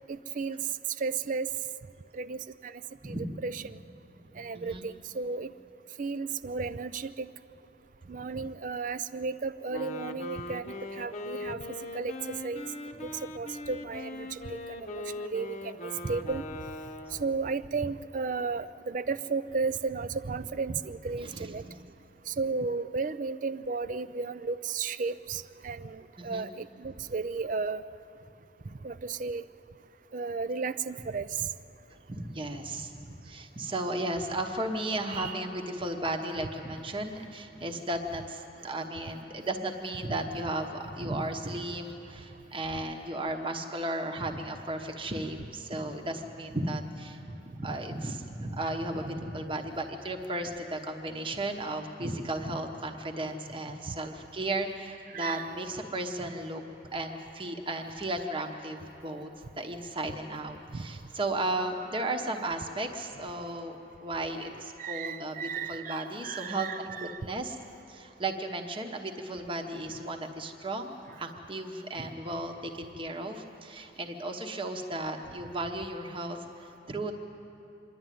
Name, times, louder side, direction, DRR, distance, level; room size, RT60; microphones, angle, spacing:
voice 1, 0.1-0.6 1.0-1.5 2.1-2.7 3.1-3.2 3.4-3.6 4.4-5.5 6.0-7.3 8.1-11.6 11.9-12.6 13.0-16.4 17.2-21.6 22.3-27.8 28.8-29.4 30.1-31.5 35.1-35.3 55.1-55.4 64.8-67.1, right 4 dB, 45° right, 14 dB, 0.4 m, -34 dB
Wind instrument woodwind instrument, 9.7-17.6, left 2 dB, 35° left, 0.9 m, -40 dB
voice 2, 21.2-21.8 26.2-26.5 32.1-47.2 47.5-59.3 59.5-67.6 67.9-77.1, right 1 dB, 25° right, 3 dB, 1.1 m, -35 dB
26.0 x 11.5 x 9.3 m, 2.9 s
head